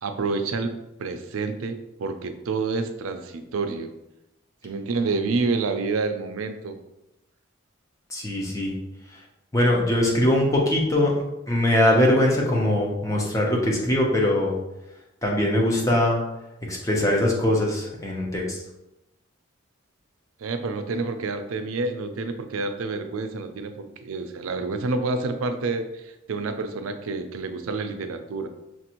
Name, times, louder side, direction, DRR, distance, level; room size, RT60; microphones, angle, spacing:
voice 1, 0.0-3.9 4.6-6.8 20.4-28.5, right 3 dB, 90° right, 8 dB, 0.4 m, -28 dB
voice 2, 8.1-8.7 9.5-11.1 11.5-14.5 15.2-16.2 16.7-18.6, left 1 dB, 15° left, -2 dB, 0.7 m, -21 dB
5.8 x 2.5 x 2.9 m, 0.92 s
head